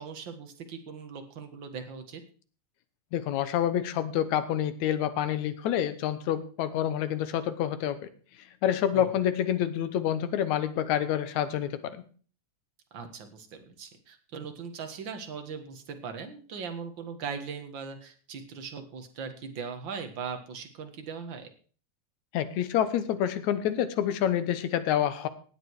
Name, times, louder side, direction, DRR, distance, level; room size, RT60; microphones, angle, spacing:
voice 1, 0.0-2.2 8.9-9.1 12.9-21.5, right 6 dB, 45° right, 6 dB, 1.9 m, -39 dB
voice 2, 3.1-8.0 8.6-12.0 22.3-25.3, left 10 dB, 75° left, 12 dB, 2.3 m, -27 dB
17.5 x 8.0 x 4.7 m, 0.42 s
omnidirectional pair, 3.3 m